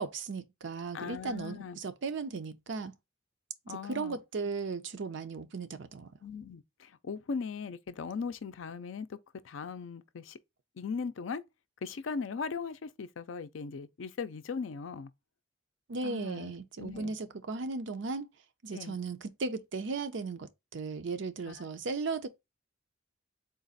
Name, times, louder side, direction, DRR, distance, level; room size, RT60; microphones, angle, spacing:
voice 1, 0.0-2.9 3.7-6.1 15.9-18.3 18.6-22.3, right 4 dB, 70° right, 0.5 m, -36 dB
voice 2, 0.9-1.8 3.7-4.2 6.2-9.2 9.4-10.4 10.8-11.4 11.8-15.1 16.0-17.2 18.7-19.0 21.5-21.7, left 5 dB, 75° left, 0.5 m, -39 dB
3.9 x 2.4 x 3.8 m
head